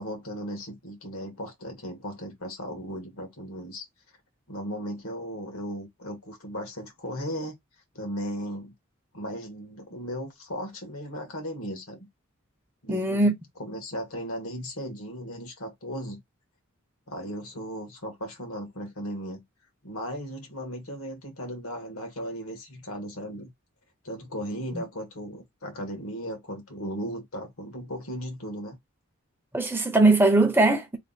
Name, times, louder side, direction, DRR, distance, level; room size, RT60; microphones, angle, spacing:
voice 1, 0.0-3.8 4.5-7.6 7.9-8.7 9.1-12.1 12.8-13.3 13.6-16.2 17.1-19.4 19.8-23.5 24.0-28.8, equal, 80° left, 1.5 m, -36 dB
voice 2, 12.9-13.3 24.7-24.8 29.5-31.0, right 2 dB, 10° right, 0.5 m, -20 dB
3.3 x 2.3 x 3.8 m
head